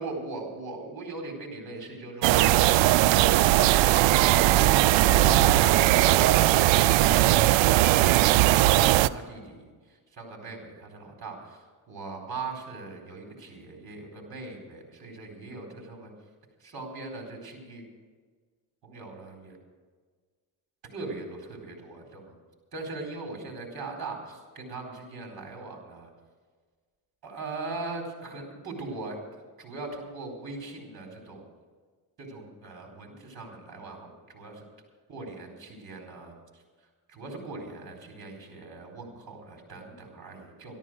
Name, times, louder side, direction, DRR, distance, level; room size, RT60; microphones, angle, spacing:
voice 1, 0.0-3.1 7.8-9.7 10.1-16.1 16.6-17.8 18.8-19.6 20.9-22.3 22.7-26.1 27.2-29.2 29.6-31.4 32.2-34.6 35.1-36.3 37.1-40.8, right 3 dB, 55° right, 2 dB, 4.4 m, -40 dB
sound 1, 2.2-9.1, right 15 dB, 90° right, 0.5 m, -19 dB
12.5 x 12.5 x 6.3 m, 1.5 s
cardioid pair, 80°, 43 cm